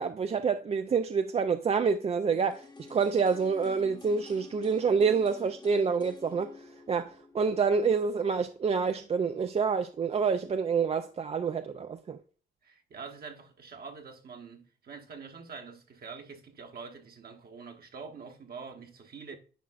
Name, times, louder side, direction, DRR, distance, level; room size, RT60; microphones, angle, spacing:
voice 1, 0.0-12.2, right 5 dB, 30° right, 0.4 m, -27 dB
sound 1, 2.5-8.4 8.7-8.8, left 4 dB, 20° left, 0.9 m, -49 dB
voice 2, 12.6-19.4, right 5 dB, 50° right, 1.2 m, -45 dB
10.5 x 4.4 x 2.4 m
cardioid pair, 90°, 20 cm